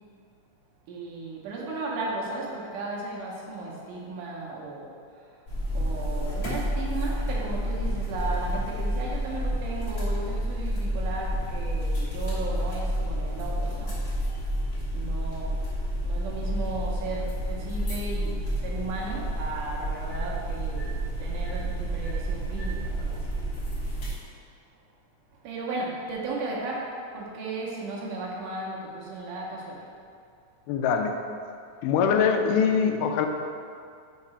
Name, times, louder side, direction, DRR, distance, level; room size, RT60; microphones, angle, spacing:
voice 1, 0.9-4.9 5.7-14.0 14.9-15.6 16.0-23.4 25.4-26.9 27.1-29.9, right 3 dB, 80° right, -3 dB, 2.5 m, -35 dB
sound 1, 5.5-24.1, equal, 60° left, 1.0 m, -30 dB
voice 2, 30.7-31.2 31.8-33.3, left 6 dB, 85° left, 5 dB, 2.1 m, -23 dB
5.8 x 4.8 x 4.3 m, 2.3 s
omnidirectional pair, 3.6 m